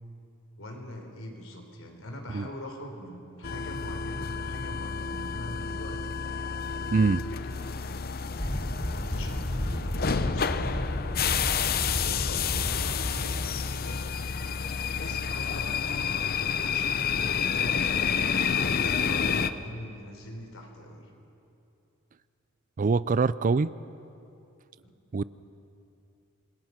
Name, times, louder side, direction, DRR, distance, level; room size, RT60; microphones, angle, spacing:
voice 1, 0.6-7.6 8.3-10.9 11.3-14.3 14.9-18.0 18.3-21.1 24.8-24.9, left 1 dB, 75° left, 3 dB, 3.9 m, -43 dB
sound 1, 3.4-19.5, left 6 dB, 45° left, 0.7 m, -29 dB
voice 2, 6.9-7.2 22.8-23.7 25.1-25.2, right 4 dB, 40° right, 17 dB, 0.4 m, -24 dB
sound 2, 8.4-13.5, equal, 10° left, 1.3 m, -33 dB
28.0 x 21.5 x 5.9 m, 2.7 s
head